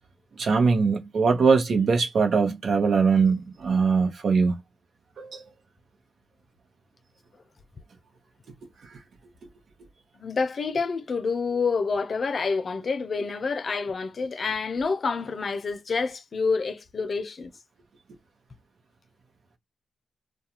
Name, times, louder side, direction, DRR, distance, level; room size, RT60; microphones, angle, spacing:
voice 1, 0.4-4.6 5.2-5.4, right 5 dB, 60° right, 0.9 m, -22 dB
voice 2, 10.2-17.5, left 4 dB, 50° left, 0.5 m, -28 dB
2.3 x 2.3 x 2.9 m
hypercardioid pair, 40°, 0 cm